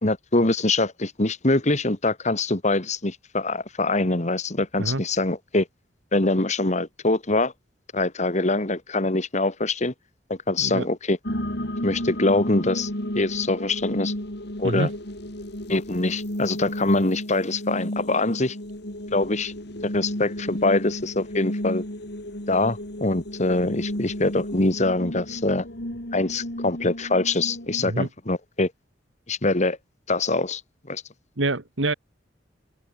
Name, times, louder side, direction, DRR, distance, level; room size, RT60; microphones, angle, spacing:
voice 1, 0.0-5.7 6.1-7.5 7.9-9.9 10.3-11.2 11.8-12.9 13.2-14.1 14.6-14.9 15.7-18.6 19.1-19.5 19.8-21.8 22.5-25.7 26.1-28.7 29.3-29.8 30.1-30.6 30.9-31.0, left 2 dB, 40° left, 1.9 m, -24 dB
sound 1, 11.2-27.8, left 1 dB, 60° left, 5.2 m, -33 dB
voice 2, 31.4-31.9, right 2 dB, 85° right, 2.0 m, -26 dB
head